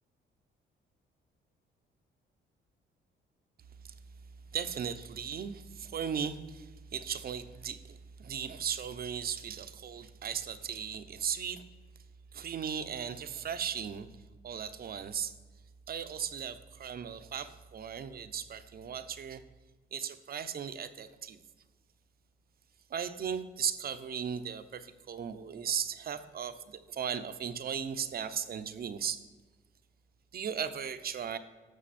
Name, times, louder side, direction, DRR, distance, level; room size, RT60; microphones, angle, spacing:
voice 1, 4.5-11.6 12.3-14.1 14.4-15.3 15.9-19.4 19.9-21.4 22.9-29.2 30.3-31.4, right 7 dB, 50° right, 11 dB, 0.8 m, -37 dB
11.5 x 7.3 x 4.3 m, 1.3 s
cardioid pair, 90°, 20 cm